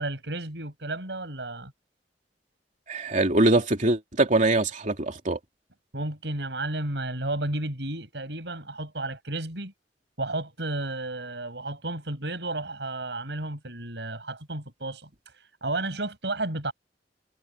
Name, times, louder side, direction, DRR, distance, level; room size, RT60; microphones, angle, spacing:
voice 1, 0.0-1.7 5.9-9.7 10.2-16.7, right 2 dB, 75° right, 7.3 m, -32 dB
voice 2, 2.9-5.4, right 2 dB, 45° right, 3.2 m, -23 dB
head